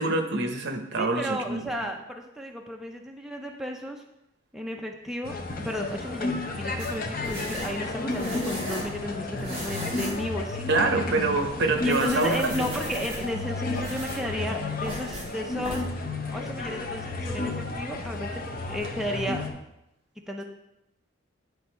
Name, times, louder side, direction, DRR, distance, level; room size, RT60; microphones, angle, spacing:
voice 1, 0.0-1.6 10.7-12.7, right 3 dB, 60° right, 5 dB, 0.8 m, -25 dB
voice 2, 1.0-4.0 4.5-10.7 11.8-15.8 16.3-19.5 20.3-20.4, equal, ahead, 1 dB, 0.5 m, -34 dB
sound 1, 5.2-19.5, left 2 dB, 45° left, 0.8 m, -32 dB
sound 2, 6.8-9.0 9.4-10.3 10.6-10.7 11.3-11.5 11.8-13.4 13.8-14.3 14.8-15.3 15.6-15.8, equal, 30° right, 2.6 m, -36 dB
9.4 x 3.4 x 4.4 m, 0.86 s
head